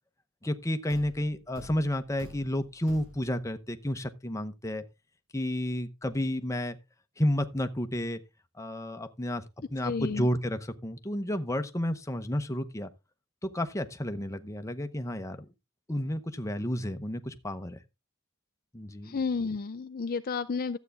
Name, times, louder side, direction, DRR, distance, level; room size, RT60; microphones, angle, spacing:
voice 1, 0.4-4.8 5.3-6.8 7.2-8.2 8.6-9.4 9.7-12.9 13.4-15.4 15.9-17.8 18.7-19.2, left 1 dB, 15° left, 0.8 m, -31 dB
Thump thud, 0.9-3.5, equal, 75° right, 2.7 m, -49 dB
voice 2, 9.8-10.3 19.0-20.8, left 4 dB, 40° left, 0.5 m, -31 dB
12.5 x 8.2 x 3.5 m
head